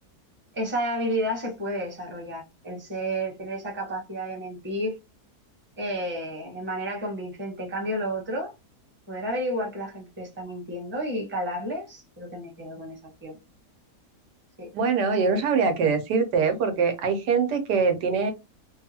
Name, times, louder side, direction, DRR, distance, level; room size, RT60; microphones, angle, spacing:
voice 1, 0.5-5.0 5.8-8.5 9.1-13.4 14.6-14.7, equal, 10° right, 0.9 m, -31 dB
voice 2, 14.7-18.3, right 5 dB, 85° right, 1.3 m, -23 dB
3.0 x 2.3 x 2.8 m
omnidirectional pair, 1.7 m